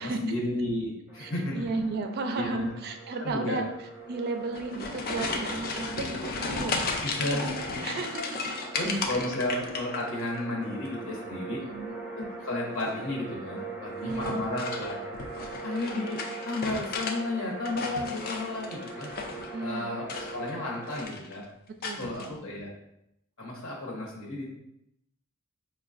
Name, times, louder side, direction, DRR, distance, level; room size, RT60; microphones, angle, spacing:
voice 1, 0.0-1.7 2.3-2.7 3.2-3.6 7.0-7.4 8.7-11.6 12.1-15.0 15.6-19.1 19.6-21.4 21.9-22.7 23.4-24.5, left 2 dB, 70° left, -2 dB, 1.0 m, -33 dB
sound 1, 1.1-21.0, right 2 dB, 10° right, 0.7 m, -42 dB
voice 2, 1.2-3.7 4.1-8.4 8.8-9.0 9.4-9.5 11.7-11.9 14.0-14.4 19.5-20.0 21.8-22.4, right 3 dB, 50° right, 4 dB, 0.4 m, -34 dB
sound 2, 4.4-10.4 10.7-11.3 12.7-13.1 14.1-17.2 17.5-19.5 20.0-20.6 20.9-21.3 21.8-22.3, left 3 dB, 45° left, 0.4 m, -35 dB
4.8 x 2.2 x 2.5 m, 0.80 s
head